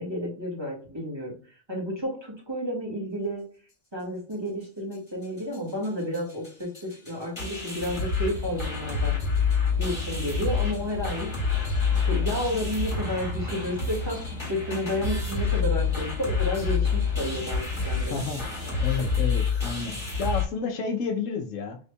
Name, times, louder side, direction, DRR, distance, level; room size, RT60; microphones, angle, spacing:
voice 1, 0.0-1.3 1.7-3.4 3.9-9.2 9.8-11.3 12.1-14.2 14.5-18.3, equal, 20° right, 1.9 m, -31 dB
sound 1, 4.9-5.0 5.2-5.6 5.8-5.9 6.1-20.4, left 5 dB, 20° left, 2.0 m, -28 dB
sound 2, 7.8-19.3, left 3 dB, 90° right, 1.3 m, -39 dB
voice 2, 18.1-18.4 18.8-21.8, left 5 dB, 80° left, 1.1 m, -30 dB
5.3 x 3.5 x 2.2 m
omnidirectional pair, 1.3 m